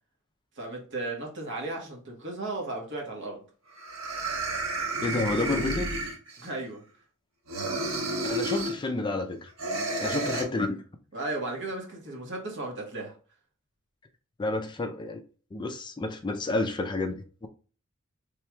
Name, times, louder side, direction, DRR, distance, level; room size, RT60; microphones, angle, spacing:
voice 1, 0.6-3.4 6.4-6.8 10.0-10.4 11.1-13.1, right 2 dB, 60° right, 1.2 m, -35 dB
sound 1, 3.2-3.3 3.8-6.6 7.5-8.8 9.6-10.4, right 2 dB, 85° right, 1.1 m, -31 dB
voice 2, 5.0-5.9 8.2-9.5 10.0-10.8 14.4-15.2 15.5-17.5, left 2 dB, 20° left, 0.4 m, -30 dB
4.5 x 3.4 x 2.2 m
head